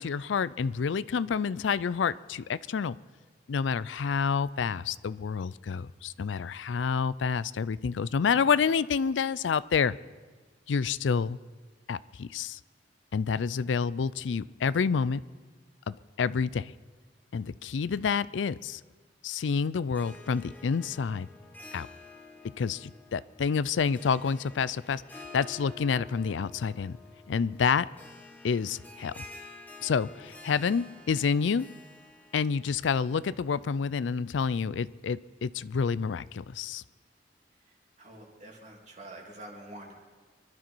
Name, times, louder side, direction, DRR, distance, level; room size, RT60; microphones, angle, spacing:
voice 1, 0.0-3.0 3.5-9.9 10.7-11.4 11.9-12.6 13.1-15.2 15.9-16.7 17.3-18.8 19.2-21.3 21.7-21.9 22.6-25.0 25.3-27.0 27.3-27.9 28.4-29.2 29.8-31.7 32.3-36.8, left 6 dB, 90° left, 18 dB, 0.4 m, -28 dB
Harp, 19.8-33.6, left 3 dB, 10° left, 1.3 m, -50 dB
voice 2, 37.6-39.9, right 1 dB, 40° right, -1 dB, 2.9 m, -47 dB
24.5 x 12.0 x 4.6 m, 1.4 s
head